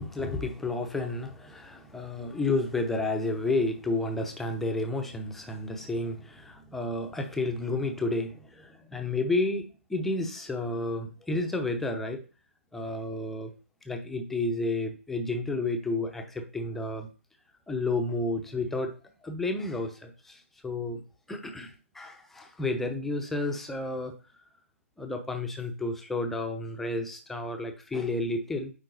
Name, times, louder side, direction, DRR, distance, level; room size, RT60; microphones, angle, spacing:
voice 1, 0.0-12.3 12.7-13.5 13.8-17.1 17.7-19.0 19.2-21.0 21.3-24.1 25.0-28.7, left 2 dB, 5° left, 0.7 m, -31 dB
9.1 x 3.8 x 4.0 m
figure-of-eight pair, 150°, 8 cm